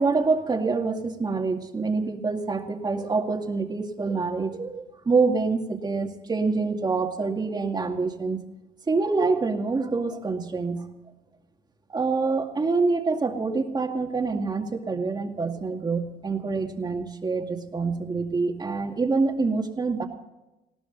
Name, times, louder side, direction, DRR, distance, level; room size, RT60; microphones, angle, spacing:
voice 1, 0.0-8.4 8.9-10.8 11.9-20.1, right 4 dB, 25° right, 4 dB, 2.2 m, -26 dB
20.0 x 17.0 x 4.0 m, 0.98 s
cardioid pair, 110°, 17 cm